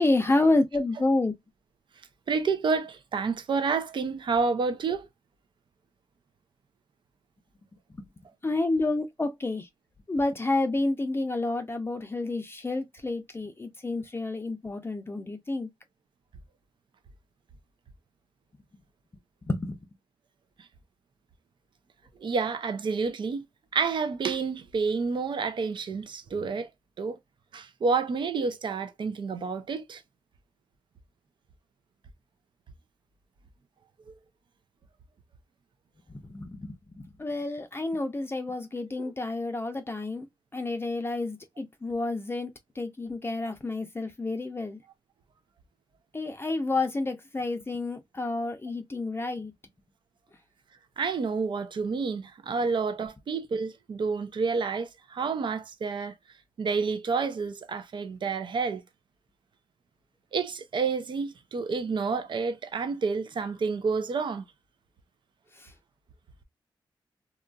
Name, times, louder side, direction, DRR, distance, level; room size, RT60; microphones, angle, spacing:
voice 1, 0.0-1.3 7.9-8.1 8.4-9.7 10.1-15.7 19.4-19.8 36.1-40.3 40.5-42.5 42.8-44.8 46.1-49.5 65.6-65.7, left 2 dB, 25° left, 0.5 m, -29 dB
voice 2, 2.3-5.1 22.2-23.4 23.7-26.7 27.0-27.2 27.5-30.0 39.0-39.1 51.0-56.1 56.6-58.8 60.3-64.4, right 4 dB, 65° right, 0.5 m, -29 dB
2.9 x 2.4 x 2.3 m
cardioid pair, 65°, 9 cm